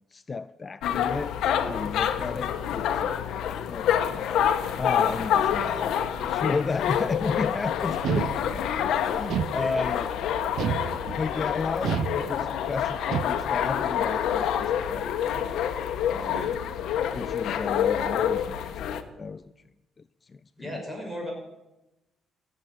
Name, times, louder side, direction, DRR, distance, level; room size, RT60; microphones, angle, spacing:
voice 1, 0.1-1.4 1.7-3.2 3.7-8.5 8.8-10.1 11.2-15.7 16.1-16.5 17.1-19.5 20.2-20.8, left 4 dB, 35° left, 15 dB, 0.4 m, -33 dB
sound 1, 0.8-19.0, left 9 dB, 80° left, 1.1 m, -27 dB
sound 2, 8.0-8.8 9.3-10.1 10.6-11.4 11.8-12.7 13.1-13.7, right 10 dB, 75° right, 0.4 m, -30 dB
voice 2, 9.5-9.8 16.3-16.5 20.6-21.3, equal, 5° right, 0 dB, 6.2 m, -36 dB
16.0 x 8.1 x 8.9 m, 1.0 s
cardioid pair, 90°, 0 cm